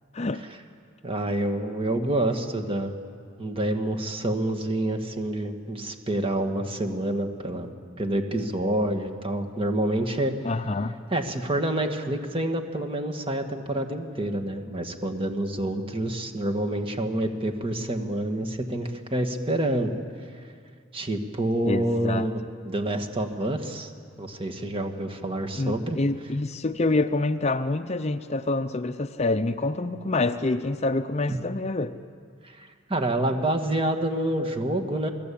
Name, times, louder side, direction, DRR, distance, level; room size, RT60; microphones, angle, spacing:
voice 1, 1.0-2.9 3.4-7.7 8.0-10.4 11.1-19.9 20.9-23.9 24.2-26.0 31.3-31.4 32.4-35.1, right 1 dB, 25° right, 5 dB, 1.8 m, -27 dB
voice 2, 10.4-10.9 21.6-22.3 25.5-31.9, left 2 dB, 35° left, 9 dB, 0.6 m, -26 dB
28.5 x 19.5 x 8.6 m, 2.2 s
head